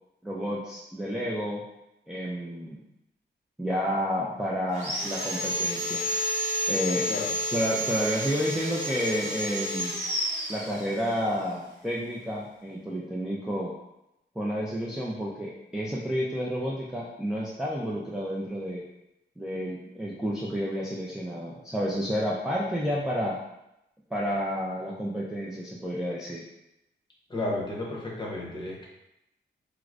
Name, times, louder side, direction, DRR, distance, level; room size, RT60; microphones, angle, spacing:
voice 1, 0.2-1.6 2.1-2.8 3.6-6.0 6.7-7.1 7.5-10.0 10.5-13.7 14.4-18.8 19.4-23.4 24.1-26.4, equal, 5° right, -6 dB, 0.3 m, -30 dB
Sawing, 4.7-11.2, equal, 40° right, 1.0 m, -30 dB
voice 2, 27.3-28.8, left 2 dB, 25° left, -4 dB, 0.8 m, -32 dB
4.5 x 2.0 x 2.4 m, 0.88 s
wide cardioid pair, 145°, 19 cm